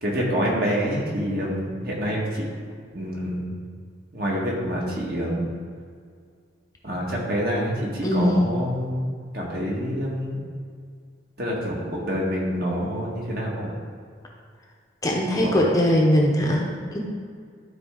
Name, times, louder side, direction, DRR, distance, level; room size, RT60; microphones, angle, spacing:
voice 1, 0.0-2.5 2.9-3.5 4.1-5.5 6.8-9.1 9.3-10.4 11.4-13.7 15.3-15.6, equal, 50° right, -3 dB, 1.7 m, -27 dB
voice 2, 8.0-8.5 15.0-17.0, equal, 20° left, -1 dB, 0.8 m, -21 dB
12.0 x 4.3 x 3.8 m, 2.1 s
head